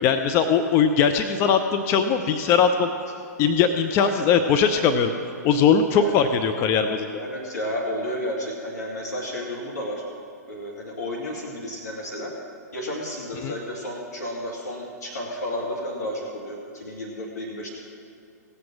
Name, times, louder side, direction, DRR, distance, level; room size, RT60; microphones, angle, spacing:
voice 1, 0.0-2.9 3.4-5.1 5.4-7.1 13.4-13.5, left 6 dB, 25° left, 7 dB, 0.6 m, -20 dB
voice 2, 6.0-6.3 7.2-10.0 10.5-12.3 12.7-17.7, left 1 dB, 70° left, -2 dB, 2.0 m, -32 dB
17.5 x 7.7 x 6.1 m, 2.4 s
figure-of-eight pair, 110°, 9 cm